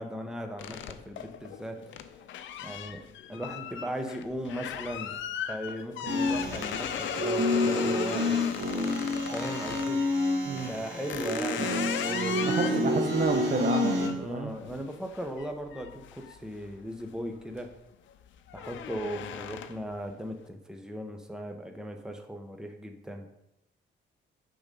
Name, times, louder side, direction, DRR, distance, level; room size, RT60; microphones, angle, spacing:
voice 1, 0.0-1.8 2.6-3.0 3.3-5.1 5.5-8.4 9.3-10.0 10.5-11.7 12.0-13.1 14.2-17.7 18.5-23.3, equal, 5° right, 4 dB, 0.9 m, -37 dB
sound 1, 0.6-10.0 10.6-17.0 17.4-17.8 18.1-19.9, left 9 dB, 75° left, 0.6 m, -38 dB
sound 2, 6.1-14.1, left 1 dB, 70° right, 2.0 m, -29 dB
voice 2, 12.4-14.5, right 4 dB, 40° right, 6 dB, 0.8 m, -30 dB
8.7 x 4.0 x 5.3 m, 0.85 s
cardioid pair, 90°, 20 cm